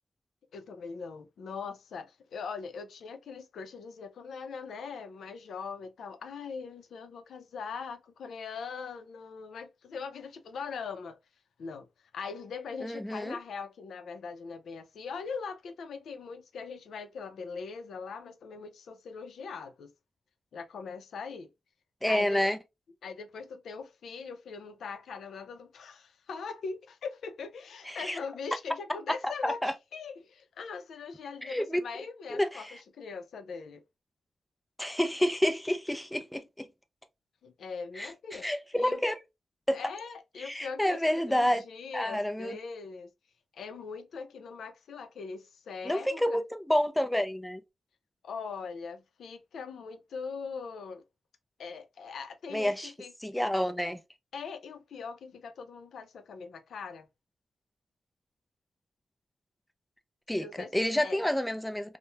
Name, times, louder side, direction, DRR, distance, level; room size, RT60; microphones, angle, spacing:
voice 1, 0.5-11.2 11.6-11.9 12.1-19.9 20.5-21.5 22.1-22.5 23.0-32.7 32.9-33.8 37.4-38.5 38.8-39.0 39.7-43.1 43.5-46.4 48.2-51.0 51.6-53.4 54.3-57.1 60.4-60.7 61.0-61.2, left 5 dB, 80° left, 0.4 m, -41 dB
voice 2, 12.8-13.4 22.0-22.6 27.9-28.2 29.4-29.7 31.4-31.8 32.3-32.8 34.8-36.7 38.0-39.1 39.7-39.8 40.4-41.6 41.9-42.6 45.8-47.6 52.5-52.9 53.2-54.0 60.3-60.5 60.7-62.0, left 1 dB, 5° left, 0.3 m, -29 dB
2.9 x 2.0 x 2.2 m
wide cardioid pair, 135°, 0 cm